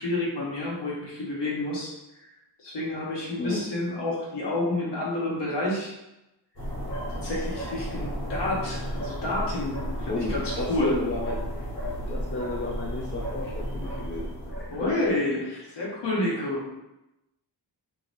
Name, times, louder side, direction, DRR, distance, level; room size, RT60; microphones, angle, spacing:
voice 1, 0.0-1.9 2.2-2.3 2.6-6.0 7.1-11.0 14.7-15.4 15.8-16.6, left 2 dB, 80° left, -5 dB, 1.3 m, -29 dB
voice 2, 3.4-3.7 10.1-11.7 12.1-14.9 15.5-15.8, left 2 dB, 30° left, -2 dB, 0.4 m, -33 dB
sound 1, 6.6-15.1, equal, 45° left, 1.5 m, -33 dB
3.7 x 3.1 x 2.6 m, 0.91 s
wide cardioid pair, 175°, 42 cm